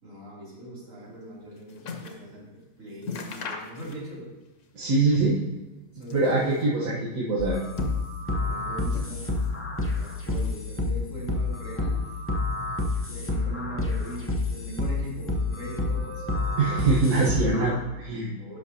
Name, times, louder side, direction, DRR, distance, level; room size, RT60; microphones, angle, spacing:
voice 1, 0.0-4.3 5.9-7.3 8.3-9.5 9.8-12.0 13.1-16.3 18.4-18.6, right 1 dB, 70° right, -7 dB, 3.4 m, -40 dB
sound 1, 1.1-2.3 2.6-2.7 3.0-4.3 4.6-5.5 5.9-6.8 7.4-8.4 8.9-9.6 9.9-10.6 11.3-11.4, left 4 dB, 65° left, 1.1 m, -39 dB
voice 2, 4.7-5.4 6.1-7.6 16.6-18.3, right 3 dB, 90° right, -6 dB, 1.6 m, -23 dB
sound 2, 7.4-17.8, left 2 dB, 15° left, 0.6 m, -29 dB
11.0 x 5.9 x 2.8 m, 1.1 s
omnidirectional pair, 1.4 m